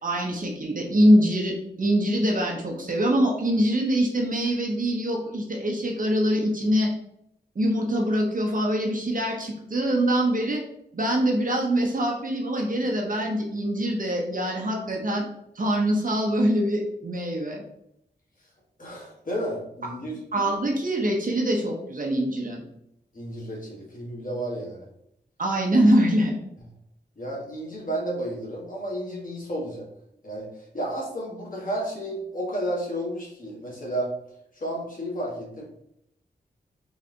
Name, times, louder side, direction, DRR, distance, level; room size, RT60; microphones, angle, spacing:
voice 1, 0.0-6.9 7.5-10.6 10.9-15.3 15.5-17.6 20.3-22.6 25.4-26.3, equal, 50° right, 0 dB, 1.1 m, -24 dB
voice 2, 18.8-20.2 23.1-24.9 27.2-29.9 30.2-34.1 34.5-35.6, right 1 dB, 50° left, -4 dB, 1.7 m, -32 dB
4.1 x 3.3 x 3.9 m, 0.76 s
wide cardioid pair, 110°, 18 cm